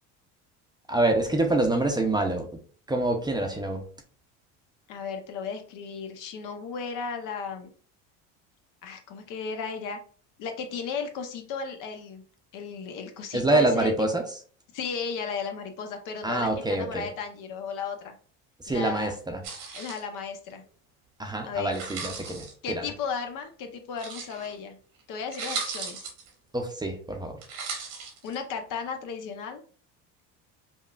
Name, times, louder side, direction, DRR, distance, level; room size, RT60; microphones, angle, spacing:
voice 1, 0.9-2.5 2.9-3.9 13.3-14.4 16.2-17.1 18.6-19.4 21.2-22.9 26.5-27.4, right 2 dB, 10° right, 3 dB, 0.6 m, -26 dB
voice 2, 4.9-7.7 8.8-10.0 10.4-12.2 12.5-13.9 14.7-18.2 18.7-19.1 19.7-20.6 21.5-21.8 22.6-24.8 25.1-26.1 28.2-29.6, left 6 dB, 60° left, 5 dB, 0.8 m, -35 dB
sound 1, 19.4-20.0 21.6-22.5 24.0-24.5 25.0-25.1 25.3-26.3 27.4-28.3, right 5 dB, 90° right, 1.5 m, -36 dB
5.3 x 2.4 x 2.4 m, 0.43 s
supercardioid pair, 105°, 35 cm